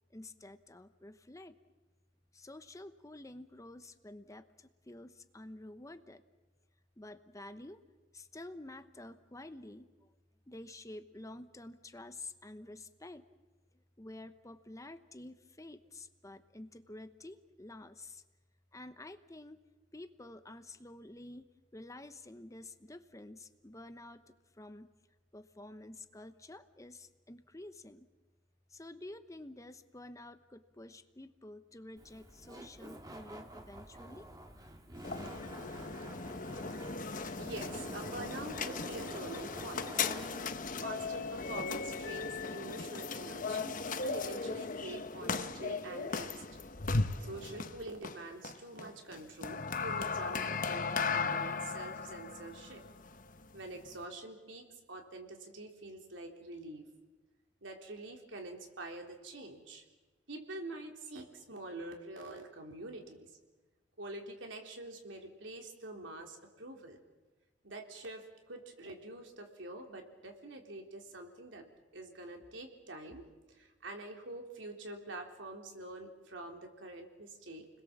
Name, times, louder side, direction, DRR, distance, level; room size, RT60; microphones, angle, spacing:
voice 1, 0.1-1.6 2.3-6.2 7.0-7.8 8.1-10.1 10.5-13.3 13.7-18.2 18.7-24.9 25.3-28.1 28.7-34.3, left 1 dB, 15° left, 10 dB, 0.9 m, -50 dB
Laughter, 32.0-42.5, right 1 dB, 20° right, 2.2 m, -49 dB
sound 1, 35.0-54.0, left 4 dB, 45° left, 1.1 m, -37 dB
voice 2, 37.0-40.1 40.8-46.4 47.2-52.8 53.5-56.8 57.6-59.8 60.3-63.3 64.0-67.0 67.6-71.7 71.9-77.7, right 2 dB, 80° right, 3 dB, 3.6 m, -46 dB
30.0 x 21.0 x 7.4 m, 1.2 s
head